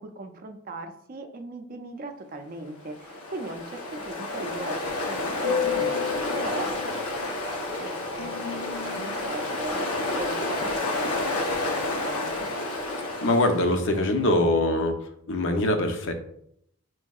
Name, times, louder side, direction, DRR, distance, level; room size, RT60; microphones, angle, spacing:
voice 1, 0.0-6.7 7.5-8.3 8.7-12.4, right 2 dB, 40° right, 6 dB, 0.4 m, -39 dB
Ocean, 2.9-13.9, left 3 dB, 85° left, 0.7 m, -29 dB
voice 2, 13.2-14.9 15.3-16.1, left 1 dB, 60° left, 6 dB, 0.5 m, -23 dB
6.0 x 2.7 x 2.3 m, 0.72 s
head